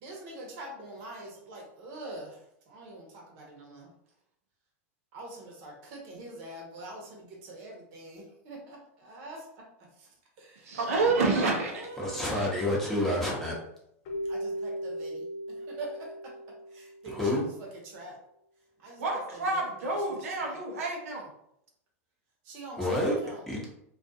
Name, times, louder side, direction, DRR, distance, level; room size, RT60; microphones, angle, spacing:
voice 1, 0.0-2.3 2.7-3.9 5.1-9.4 10.4-10.5 11.7-12.3 14.3-15.2 15.7-16.1 16.7-17.2 17.9-18.1 18.8-19.2 19.5-19.6 20.4-20.6 22.5-23.4, right 2 dB, 55° right, 0 dB, 0.9 m, -44 dB
voice 2, 10.6-11.9 19.0-21.3, right 3 dB, 80° right, 0 dB, 0.6 m, -28 dB
voice 3, 12.0-13.5 17.0-17.4 22.7-23.2 23.5-23.7, left 1 dB, 5° left, -4 dB, 0.8 m, -28 dB
Keyboard (musical), 14.1-17.3, equal, 55° left, 0.6 m, -37 dB
2.4 x 2.4 x 2.6 m, 0.75 s
hypercardioid pair, 110°, 8 cm